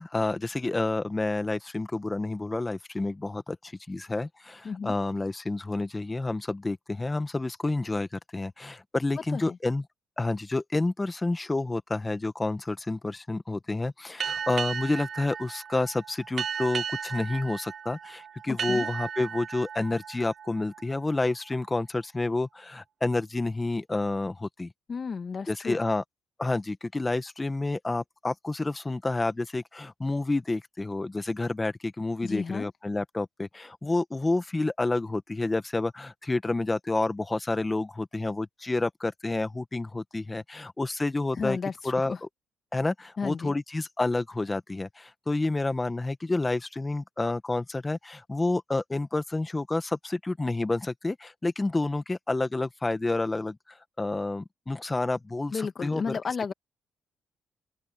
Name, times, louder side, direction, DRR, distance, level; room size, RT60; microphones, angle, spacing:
voice 1, 0.0-9.8 10.2-24.7 25.5-26.0 26.4-41.6 41.8-42.3 42.7-53.6 54.0-56.2, left 2 dB, 20° left, 1.5 m, -29 dB
sound 1, 14.2-21.5, right 7 dB, 50° right, 1.0 m, -35 dB
voice 2, 24.9-25.8 32.2-32.7 41.4-42.2 43.2-43.5 55.5-56.5, left 5 dB, 45° left, 1.8 m, -33 dB
open air
cardioid pair, 90°, 0 cm